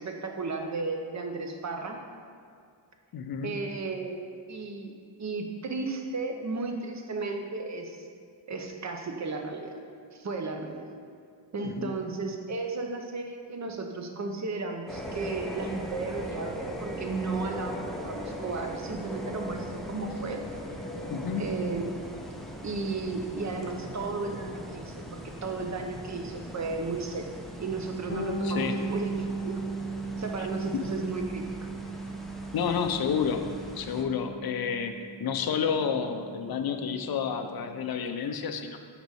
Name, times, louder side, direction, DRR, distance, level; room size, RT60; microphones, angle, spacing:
voice 1, 0.0-2.0 3.4-4.2 4.5-4.9 5.2-8.0 8.5-9.8 10.1-10.9 11.5-20.4 21.4-21.9 22.6-27.3 27.6-29.6 30.2-31.5, right 3 dB, 35° right, 3 dB, 0.7 m, -34 dB
voice 2, 3.1-3.5 11.8-11.9 21.1-21.4 28.4-28.7 32.5-33.4 33.7-34.9 35.2-38.8, left 7 dB, 50° left, 6 dB, 0.5 m, -30 dB
sound 1, 14.9-34.0, equal, ahead, 0.5 m, -40 dB
Bass guitar, 28.1-37.7, right 3 dB, 25° left, 0.8 m, -37 dB
5.3 x 4.0 x 4.7 m, 2.3 s
cardioid pair, 90°, 47 cm